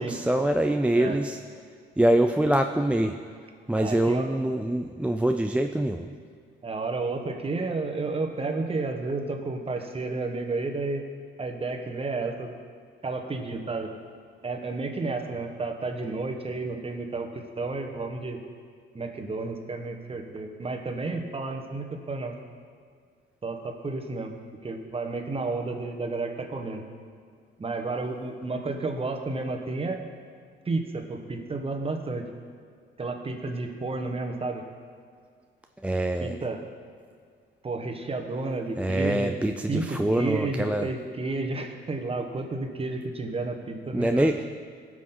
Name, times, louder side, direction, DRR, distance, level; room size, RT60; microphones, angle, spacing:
voice 1, 0.0-1.4 2.0-3.2 3.7-6.1 35.8-36.4 38.8-40.9 43.9-44.4, right 1 dB, 5° right, 4 dB, 0.4 m, -24 dB
voice 2, 3.8-4.3 6.6-11.0 11.4-12.5 13.0-13.9 14.4-18.4 18.9-22.3 23.4-24.3 24.6-26.8 27.6-30.0 30.6-32.2 33.0-34.6 36.2-36.6 37.6-39.3 39.7-44.3, right 3 dB, 30° right, 3 dB, 1.3 m, -31 dB
17.0 x 6.2 x 3.9 m, 2.1 s
cardioid pair, 90°, 20 cm